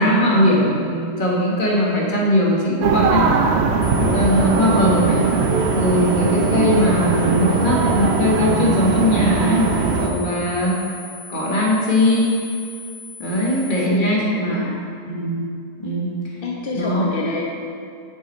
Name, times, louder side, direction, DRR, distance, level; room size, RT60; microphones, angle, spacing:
voice 1, 0.0-3.3 4.0-5.3 5.7-10.8 11.3-12.4 13.2-14.7 15.1-15.5 15.8-16.1 16.7-17.0, left 1 dB, 35° left, -3 dB, 1.3 m, -19 dB
sound 1, 2.8-10.1, right 4 dB, 90° right, 0.5 m, -20 dB
sound 2, 3.8-13.8, left 4 dB, 85° left, 1.7 m, -39 dB
voice 2, 13.5-14.9 16.4-17.4, left 3 dB, 60° left, -2 dB, 0.6 m, -29 dB
6.8 x 5.7 x 4.2 m, 2.4 s
omnidirectional pair, 1.7 m